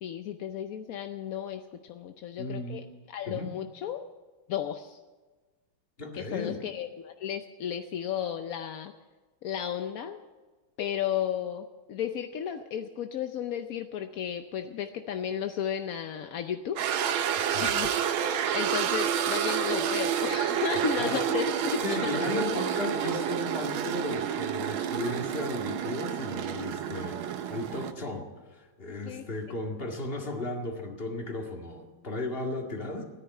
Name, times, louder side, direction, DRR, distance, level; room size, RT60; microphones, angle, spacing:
voice 1, 0.0-4.0 4.5-5.0 6.1-8.9 9.4-10.2 10.8-16.8 17.2-17.9 18.5-21.8 29.0-29.3, left 9 dB, 65° left, 7 dB, 0.9 m, -34 dB
voice 2, 2.4-2.8 3.3-3.6 6.0-6.6 17.4-17.7 20.7-21.2 21.8-33.0, left 2 dB, 30° left, 2 dB, 2.1 m, -35 dB
sound 1, 16.8-27.9, right 9 dB, 90° right, 1.7 m, -29 dB
14.0 x 10.0 x 9.2 m, 1.3 s
omnidirectional pair, 2.2 m